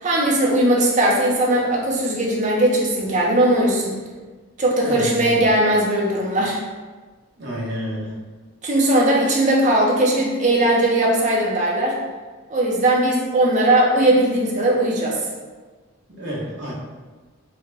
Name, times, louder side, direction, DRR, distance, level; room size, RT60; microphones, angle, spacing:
voice 1, 0.0-3.9 4.6-6.6 8.6-12.0 12.5-15.2, right 1 dB, 35° right, -2 dB, 0.6 m, -19 dB
voice 2, 4.8-5.5 7.4-8.1 16.2-16.7, equal, 55° right, -6 dB, 1.0 m, -30 dB
3.6 x 2.2 x 3.3 m, 1.3 s
head